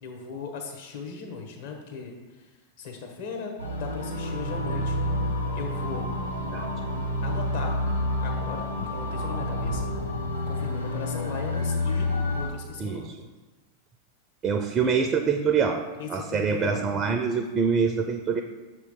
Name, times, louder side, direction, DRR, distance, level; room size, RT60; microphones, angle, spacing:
voice 1, 0.0-2.1 2.8-5.0 5.5-6.1 7.2-7.7 8.2-9.9 10.5-13.1 16.0-16.8, left 5 dB, 55° left, 1 dB, 1.2 m, -37 dB
sound 1, 3.6-12.5, left 1 dB, 85° left, 0.8 m, -29 dB
voice 2, 12.8-13.1 14.4-18.4, right 6 dB, 25° right, 6 dB, 0.4 m, -25 dB
6.4 x 3.1 x 5.5 m, 1.2 s
figure-of-eight pair, 90°, 0 cm